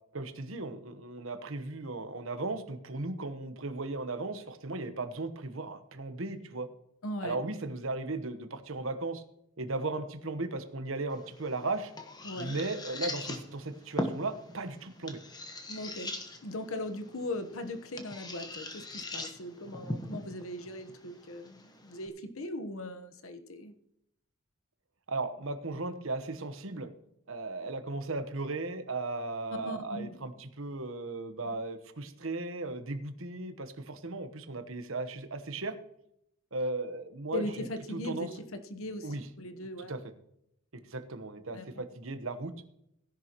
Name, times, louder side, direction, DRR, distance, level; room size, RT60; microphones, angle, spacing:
voice 1, 0.1-6.7 7.2-9.2 9.6-11.9 12.3-15.2 25.1-26.9 27.3-35.8 36.5-38.3 39.0-39.3 39.9-40.0 40.7-42.5, right 2 dB, 65° right, 9 dB, 1.1 m, -36 dB
voice 2, 7.0-7.4 12.2-12.6 15.7-16.1 16.4-23.7 29.6-30.2 37.3-40.0 41.5-41.8, left 1 dB, 70° left, 8 dB, 1.1 m, -39 dB
sound 1, 11.1-22.1, left 1 dB, 20° left, 1.1 m, -41 dB
16.5 x 11.0 x 3.0 m, 0.77 s
head